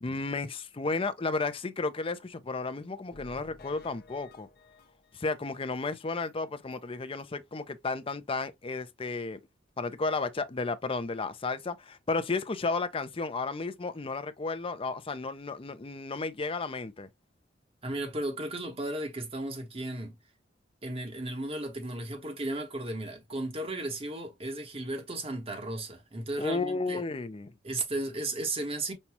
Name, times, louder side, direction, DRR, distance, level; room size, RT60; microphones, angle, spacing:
voice 1, 0.0-4.5 5.1-9.4 9.8-17.1 26.4-27.5, left 3 dB, 30° left, 0.5 m, -33 dB
sound 1, 3.1-5.8 6.2-6.3 6.7-6.8 7.2-7.3, left 3 dB, 55° left, 0.8 m, -54 dB
voice 2, 17.8-20.2 20.8-27.0 27.6-28.9, right 2 dB, 35° right, 1.2 m, -35 dB
5.4 x 2.3 x 2.9 m
head